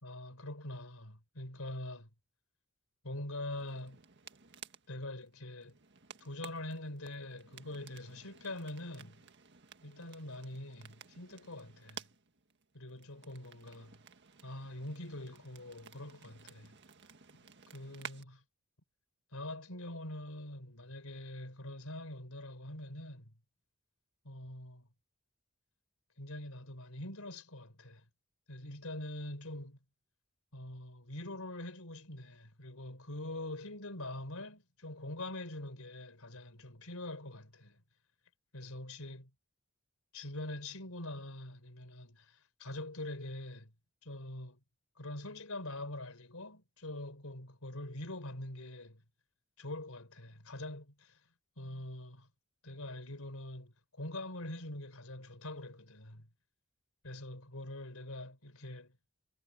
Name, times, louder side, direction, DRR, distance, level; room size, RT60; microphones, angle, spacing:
voice 1, 0.0-2.1 3.0-4.0 4.9-5.7 6.2-9.3 9.8-12.1 12.7-14.0 14.4-16.7 17.7-18.4 19.3-23.3 24.2-24.9 26.2-28.0 28.5-29.8 30.5-37.8 38.5-39.3 40.1-43.7 44.0-44.6 45.0-49.0 49.6-51.2 51.6-52.3 52.6-56.3 57.0-59.0, left 1 dB, 75° left, 4.4 m, -44 dB
sound 1, 3.5-18.2, right 7 dB, 55° right, 1.8 m, -54 dB
head